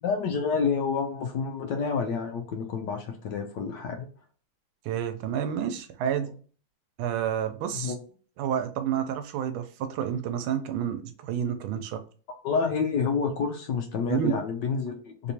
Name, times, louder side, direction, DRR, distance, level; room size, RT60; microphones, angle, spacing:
voice 1, 0.0-4.1 7.7-8.0 12.4-15.3, left 5 dB, 70° left, 4 dB, 1.1 m, -28 dB
voice 2, 4.8-6.3 7.0-7.9 8.4-12.0 14.1-14.3, right 9 dB, 90° right, 9 dB, 1.4 m, -29 dB
3.4 x 3.0 x 2.7 m, 0.41 s
omnidirectional pair, 2.2 m